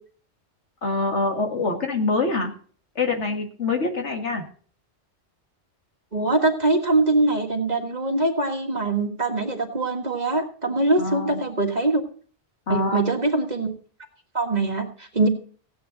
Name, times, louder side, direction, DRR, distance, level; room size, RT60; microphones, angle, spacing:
voice 1, 0.8-2.5 3.0-4.4 11.0-11.4 12.7-13.0, left 3 dB, 80° left, 3 dB, 2.2 m, -25 dB
voice 2, 6.1-12.0 12.7-13.7 14.3-15.3, right 2 dB, 40° right, 3 dB, 1.7 m, -23 dB
15.5 x 9.5 x 3.9 m, 0.43 s
omnidirectional pair, 1.2 m